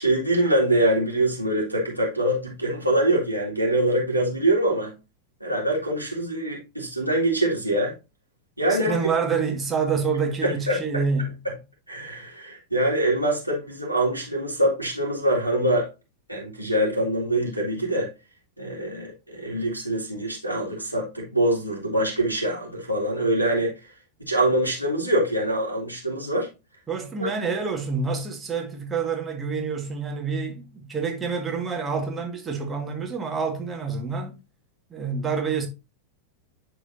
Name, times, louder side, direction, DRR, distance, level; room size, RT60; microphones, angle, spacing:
voice 1, 0.0-4.9 5.4-7.9 8.6-9.0 10.4-11.0 11.9-15.9 16.3-18.1 18.6-23.8 24.3-26.5 27.2-27.3, right 1 dB, 90° right, 2.4 m, -24 dB
voice 2, 8.7-11.3 26.9-34.3 34.9-35.7, right 5 dB, 15° right, 1.8 m, -27 dB
11.0 x 3.9 x 2.7 m
figure-of-eight pair, 90°, 0 cm